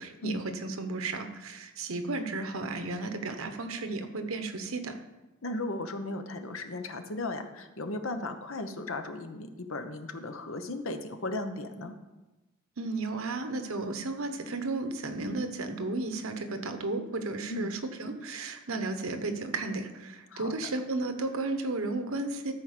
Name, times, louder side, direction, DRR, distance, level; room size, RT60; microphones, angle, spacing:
voice 1, 0.0-4.9 12.8-22.5, right 2 dB, 90° right, 7 dB, 1.1 m, -34 dB
voice 2, 5.4-12.0 17.5-17.7 20.3-20.7, left 2 dB, 70° left, 7 dB, 1.0 m, -36 dB
13.0 x 4.8 x 6.7 m, 1.1 s
head